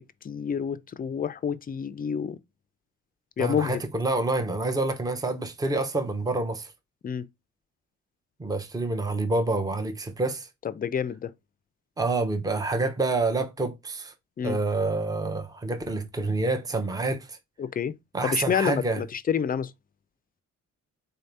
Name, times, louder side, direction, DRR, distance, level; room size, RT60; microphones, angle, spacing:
voice 1, 0.2-2.4 3.4-3.8 7.0-7.3 10.6-11.3 14.4-14.6 17.6-17.9 18.2-19.7, left 7 dB, 30° left, 0.4 m, -28 dB
voice 2, 3.4-6.7 8.4-10.5 12.0-14.1 14.4-17.4 18.1-19.0, right 2 dB, 10° right, 0.7 m, -27 dB
3.9 x 2.7 x 3.3 m
cardioid pair, 90°, 30 cm